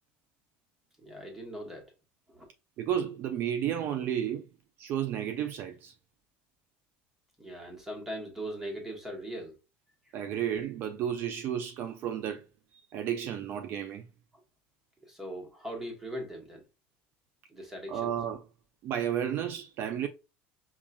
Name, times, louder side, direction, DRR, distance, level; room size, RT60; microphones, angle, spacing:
voice 1, 1.0-1.9 2.3-2.5 7.4-9.5 15.0-16.6 17.5-18.1, right 1 dB, 5° right, 1.2 m, -40 dB
voice 2, 2.8-4.5 4.8-5.9 10.1-12.4 12.7-14.1 17.9-18.4 18.8-20.1, right 9 dB, 45° right, 0.4 m, -32 dB
5.4 x 2.4 x 2.3 m
cardioid pair, 140°, 5 cm